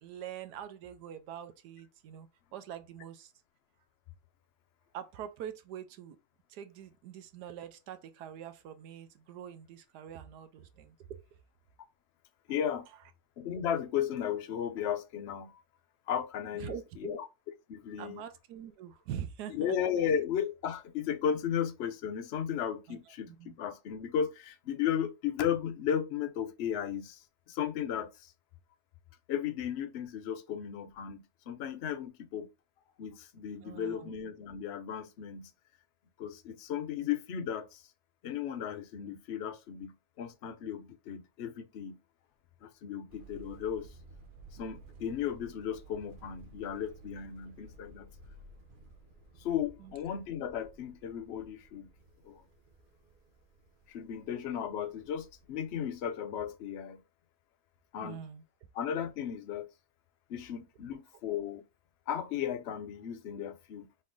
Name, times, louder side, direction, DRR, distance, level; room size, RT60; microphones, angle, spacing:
voice 1, 0.0-3.3 4.9-6.2 6.5-10.9 16.6-17.2 18.0-19.7 22.9-23.0 23.3-23.5 33.6-34.1 49.8-49.9 58.0-58.4, right 9 dB, 80° right, 1.2 m, -44 dB
voice 2, 12.5-12.9 13.4-15.6 16.1-17.3 17.7-18.2 19.5-27.2 27.5-28.3 29.3-32.5 33.0-35.5 36.2-37.9 38.2-42.0 42.6-43.9 44.5-48.1 49.4-51.9 52.2-52.4 53.9-57.0 57.9-58.2 58.7-59.7 60.3-61.6 62.1-63.9, left 9 dB, 65° left, 0.6 m, -35 dB
sound 1, 43.1-56.0, right 2 dB, 50° right, 0.6 m, -55 dB
4.3 x 3.1 x 3.7 m
omnidirectional pair, 1.8 m